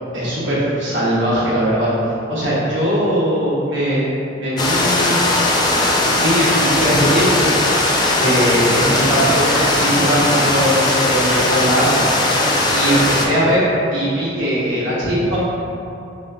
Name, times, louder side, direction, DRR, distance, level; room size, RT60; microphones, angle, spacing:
voice 1, 0.1-1.9 2.3-4.0 4.3-5.3 6.0-7.5 7.8-12.0 12.3-12.4 12.7-13.6 13.9-15.4, equal, 80° right, -9 dB, 1.3 m, -20 dB
sound 1, 4.6-13.3, left 2 dB, 20° left, 0.4 m, -18 dB
3.2 x 3.1 x 3.4 m, 2.7 s
head